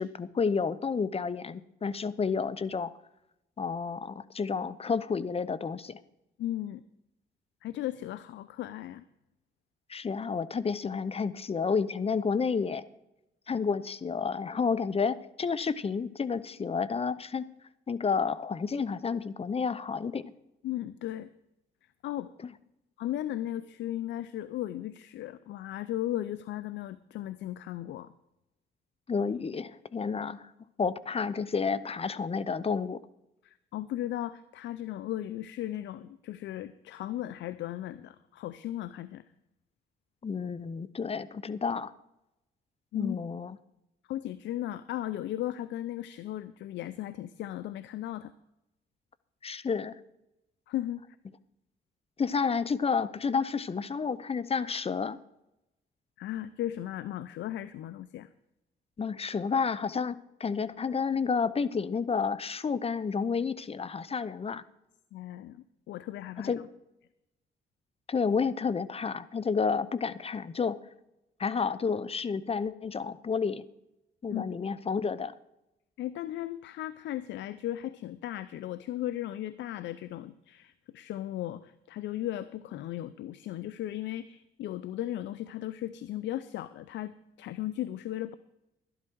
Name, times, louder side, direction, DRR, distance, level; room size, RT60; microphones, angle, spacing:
voice 1, 0.0-2.9 3.6-6.0 9.9-12.8 13.5-17.4 17.9-20.2 29.1-30.5 30.8-33.0 40.2-41.9 42.9-43.6 49.4-50.0 52.2-55.2 59.0-64.6 66.4-66.6 68.1-70.8 71.4-73.6 74.2-75.3, left 5 dB, 30° left, 17 dB, 0.7 m, -30 dB
voice 2, 6.4-6.8 7.6-9.0 20.6-21.3 22.0-22.3 23.0-28.1 33.4-39.2 42.9-43.2 44.1-48.3 50.7-51.0 56.2-58.3 65.1-66.6 74.3-74.5 76.0-88.3, left 13 dB, 80° left, 15 dB, 0.5 m, -36 dB
12.0 x 12.0 x 4.6 m, 0.91 s
cardioid pair, 80°, 18 cm